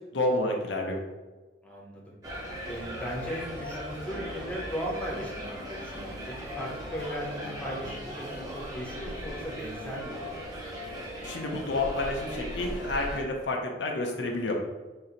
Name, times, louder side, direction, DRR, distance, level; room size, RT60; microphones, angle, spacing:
voice 1, 0.1-1.0 11.2-14.6, left 2 dB, 80° left, 1 dB, 0.7 m, -29 dB
voice 2, 1.6-2.1 2.6-10.4, equal, 5° left, -3 dB, 0.7 m, -37 dB
sound 1, 2.2-13.2, equal, 20° right, 0.9 m, -38 dB
4.3 x 2.1 x 3.8 m, 1.2 s
head